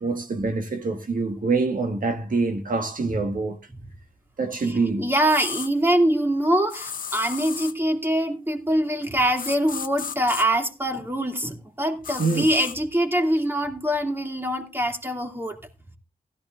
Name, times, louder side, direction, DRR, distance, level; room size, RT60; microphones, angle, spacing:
voice 1, 0.0-3.6 4.4-5.0 12.2-12.5, right 3 dB, 65° right, 1.6 m, -25 dB
voice 2, 4.7-15.6, right 1 dB, 15° right, 2.4 m, -24 dB
sound 1, 5.3-5.7 6.7-7.8 9.4-10.4 12.0-12.8, left 7 dB, 65° left, 0.7 m, -34 dB
16.0 x 14.0 x 2.5 m
cardioid pair, 70°, 15 cm